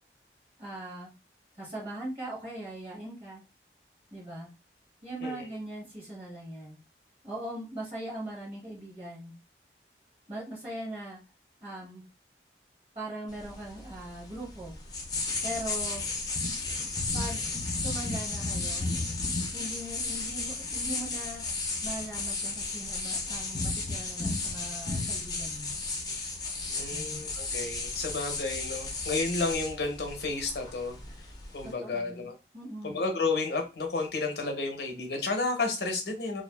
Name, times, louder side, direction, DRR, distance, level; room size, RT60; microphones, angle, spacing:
voice 1, 0.6-1.1 1.5-3.4 4.1-4.5 5.0-6.8 7.2-9.3 10.3-11.2 11.6-12.0 12.9-14.8 15.4-16.0 17.1-17.4 17.8-18.9 19.5-21.4 21.8-25.7 26.9-27.3 31.6-33.0, right 1 dB, 35° right, -5 dB, 1.0 m, -40 dB
sound 1, 13.3-31.7, left 3 dB, 20° left, 0.5 m, -34 dB
voice 2, 26.7-31.0 31.5-32.3 32.8-36.4, left 3 dB, 65° left, 3 dB, 0.7 m, -31 dB
2.4 x 2.3 x 2.2 m, 0.28 s
head